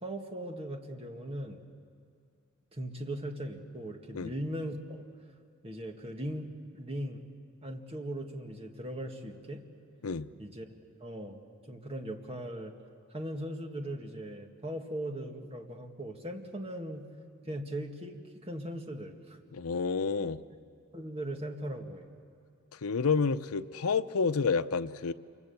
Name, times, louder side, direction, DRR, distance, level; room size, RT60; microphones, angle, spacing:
voice 1, 0.0-1.6 2.7-5.0 5.6-6.5 6.7-7.2 7.6-9.6 10.4-10.7 11.0-11.4 11.7-12.7 13.1-17.1 17.5-19.4 20.5-20.6 20.9-22.1, right 1 dB, 30° right, 3 dB, 1.9 m, -39 dB
voice 2, 19.5-20.4 22.8-25.1, left 5 dB, 90° left, 12 dB, 0.7 m, -29 dB
27.5 x 24.5 x 7.1 m, 2.4 s
head